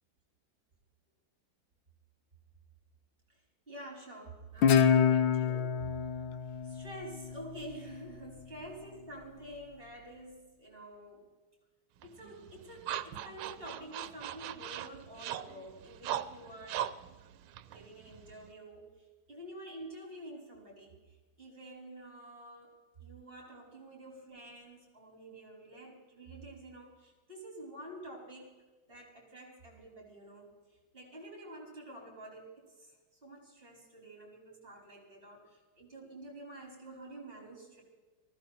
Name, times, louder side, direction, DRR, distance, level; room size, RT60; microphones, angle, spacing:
voice 1, 3.7-5.9 6.6-11.2 12.0-16.9 17.7-28.6 28.9-30.5 30.9-32.9 33.2-37.8, right 1 dB, 25° right, -1 dB, 4.8 m, -49 dB
Guitar, 4.6-7.9, left 7 dB, 80° left, 1.7 m, -27 dB
sound 1, 12.0-18.5, right 11 dB, 85° right, 1.5 m, -40 dB
19.0 x 15.5 x 4.2 m, 1.2 s
omnidirectional pair, 2.3 m